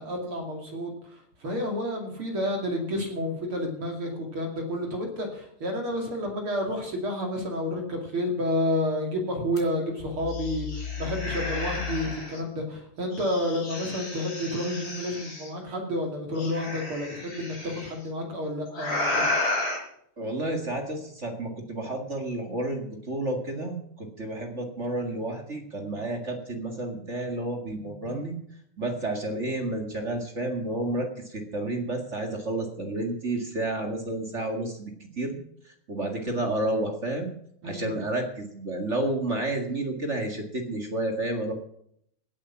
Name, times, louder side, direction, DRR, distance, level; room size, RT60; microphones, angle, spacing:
voice 1, 0.0-19.3 37.6-37.9, left 1 dB, 45° right, 2 dB, 3.2 m, -30 dB
sound 1, 9.6-9.7 10.0-12.4 13.1-15.5 16.4-17.9 18.7-19.8, left 3 dB, 30° left, 4.4 m, -32 dB
voice 2, 20.2-28.4 28.8-34.9 35.2-35.4 35.9-37.3 37.6-41.5, right 1 dB, 30° right, 3 dB, 1.8 m, -30 dB
17.5 x 8.8 x 5.9 m, 0.69 s
omnidirectional pair, 3.4 m